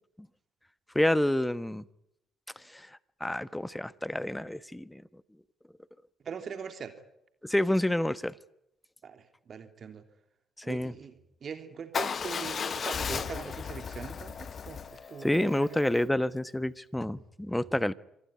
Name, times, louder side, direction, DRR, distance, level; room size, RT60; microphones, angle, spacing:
voice 1, 0.9-1.8 2.7-2.9 3.2-5.0 7.4-8.3 10.6-10.9 15.2-17.9, left 1 dB, 5° left, 17 dB, 1.3 m, -28 dB
voice 2, 6.2-6.9 9.0-10.0 10.6-15.8, right 7 dB, 45° right, 8 dB, 3.0 m, -42 dB
Motorcycle / Engine starting / Idling, 11.9-16.0, left 6 dB, 40° left, 1.2 m, -35 dB
26.0 x 19.0 x 10.0 m, 0.79 s
figure-of-eight pair, 45°, 0 cm